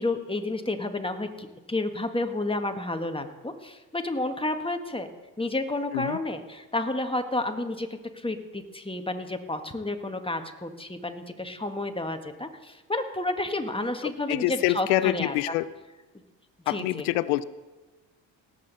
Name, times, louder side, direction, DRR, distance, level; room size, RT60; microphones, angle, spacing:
voice 1, 0.0-5.1 5.4-15.5 16.6-17.1, left 2 dB, 10° left, 6 dB, 1.5 m, -31 dB
voice 2, 14.3-15.6 16.7-17.4, left 16 dB, 85° left, 17 dB, 0.6 m, -26 dB
18.0 x 8.4 x 4.0 m, 1.2 s
hypercardioid pair, 55°, 46 cm